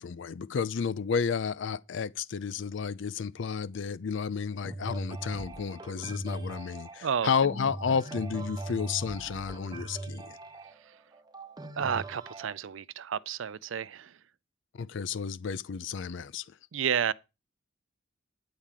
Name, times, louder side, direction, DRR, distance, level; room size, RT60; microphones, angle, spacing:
voice 1, 0.0-10.4 14.7-16.4, left 6 dB, 60° left, 0.4 m, -32 dB
sound 1, 4.6-12.6, right 2 dB, 20° right, 1.1 m, -40 dB
voice 2, 11.8-14.2 16.7-17.1, right 7 dB, 70° right, 0.5 m, -31 dB
10.0 x 4.8 x 7.4 m
head